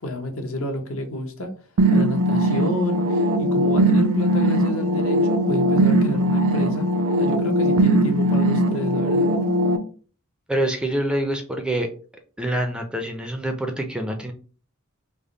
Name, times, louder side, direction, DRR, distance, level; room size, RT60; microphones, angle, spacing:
voice 1, 0.0-1.5 1.9-6.9 7.2-9.3, equal, 70° left, 5 dB, 0.8 m, -30 dB
sound 1, 1.8-9.8, right 1 dB, 75° right, 0.4 m, -20 dB
voice 2, 10.5-11.9 12.4-14.3, right 1 dB, 5° right, 4 dB, 0.4 m, -25 dB
3.4 x 2.1 x 3.7 m, 0.39 s
head